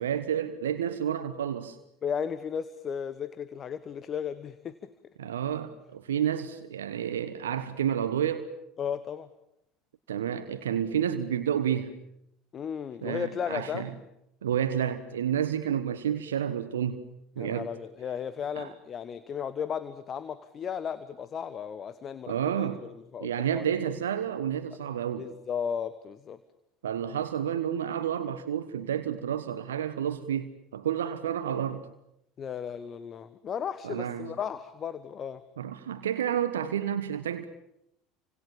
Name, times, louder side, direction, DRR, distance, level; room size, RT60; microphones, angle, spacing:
voice 1, 0.0-1.8 5.2-8.5 10.1-11.9 13.0-13.9 14.4-17.1 17.4-17.7 18.6-18.7 22.3-22.8 23.2-25.3 26.8-31.9 33.8-34.4 35.6-37.5, right 9 dB, 75° right, 1.3 m, -30 dB
voice 2, 2.0-4.9 8.8-9.3 12.5-13.9 17.4-23.7 25.2-26.4 32.4-35.4, left 7 dB, 40° left, 1.3 m, -35 dB
29.5 x 26.0 x 7.3 m
figure-of-eight pair, 70°, 0 cm